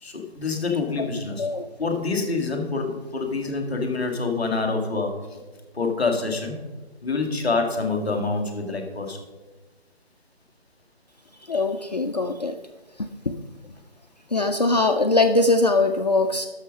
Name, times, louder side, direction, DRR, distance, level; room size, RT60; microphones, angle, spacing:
voice 1, 0.0-1.5 1.8-5.4 5.7-6.6 7.0-9.2, left 3 dB, ahead, -14 dB, 0.9 m, -26 dB
voice 2, 11.5-12.6 13.0-13.4 14.3-16.5, left 2 dB, 40° left, 5 dB, 0.5 m, -22 dB
12.0 x 6.5 x 5.4 m, 1.2 s
figure-of-eight pair, 165°, 32 cm